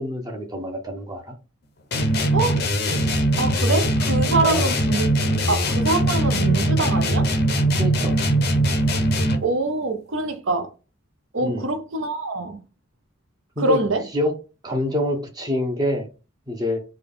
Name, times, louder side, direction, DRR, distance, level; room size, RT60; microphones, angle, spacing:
voice 1, 0.0-1.3 4.4-4.7 7.8-8.2 11.4-11.6 13.6-13.8 14.1-14.3 14.6-16.1 16.5-16.8, left 1 dB, 20° right, 0.7 m, -26 dB
sound 1, 1.9-9.6, right 1 dB, 50° left, 0.5 m, -21 dB
voice 2, 3.4-5.1 5.5-7.3 9.4-10.7 11.3-12.6 13.6-14.0, right 2 dB, 70° right, 0.7 m, -24 dB
3.4 x 2.3 x 3.6 m
head